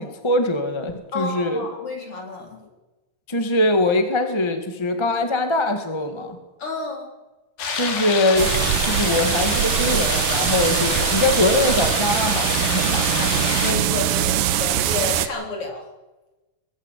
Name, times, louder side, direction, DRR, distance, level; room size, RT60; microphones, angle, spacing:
voice 1, 0.0-1.6 3.3-6.4 7.7-13.4, left 1 dB, 15° left, 6 dB, 1.1 m, -22 dB
voice 2, 1.1-2.6 6.6-7.1 13.6-15.9, left 3 dB, 40° left, 2 dB, 4.4 m, -30 dB
sound 1, 7.6-13.7, left 4 dB, 90° left, 4.7 m, -27 dB
sound 2, 8.4-15.3, right 11 dB, 75° right, 2.5 m, -22 dB
22.5 x 16.0 x 8.4 m, 1.1 s
omnidirectional pair, 4.0 m